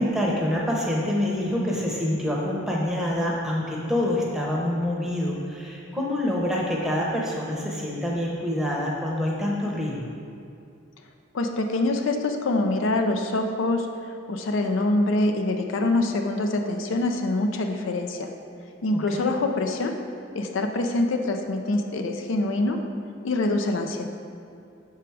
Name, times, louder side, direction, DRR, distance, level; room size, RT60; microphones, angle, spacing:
voice 1, 0.0-10.1 18.9-19.3, left 1 dB, ahead, -3 dB, 0.8 m, -26 dB
voice 2, 11.3-13.9 14.3-18.3 18.8-19.9 20.3-22.8 23.2-24.1, left 2 dB, 75° left, 5 dB, 0.5 m, -25 dB
6.0 x 4.6 x 4.6 m, 2.4 s
head